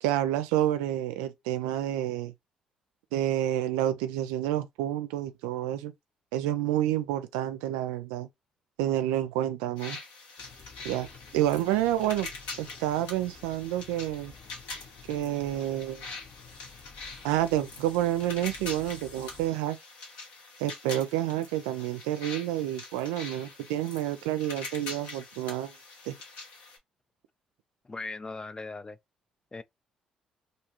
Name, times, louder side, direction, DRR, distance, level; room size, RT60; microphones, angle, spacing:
voice 1, 0.0-2.3 3.1-5.9 6.3-8.3 8.8-10.0 10.8-12.3 12.6-14.3 15.1-16.1 17.2-19.8 20.6-25.8 26.1-26.2, right 12 dB, 80° right, 0.4 m, -29 dB
sound 1, 9.8-26.8, left 3 dB, 80° left, 1.0 m, -44 dB
sound 2, 10.4-19.5, left 5 dB, 60° left, 1.1 m, -52 dB
voice 2, 27.8-29.0 29.5-29.6, left 3 dB, 25° left, 0.4 m, -38 dB
2.6 x 2.3 x 2.9 m
hypercardioid pair, 45°, 3 cm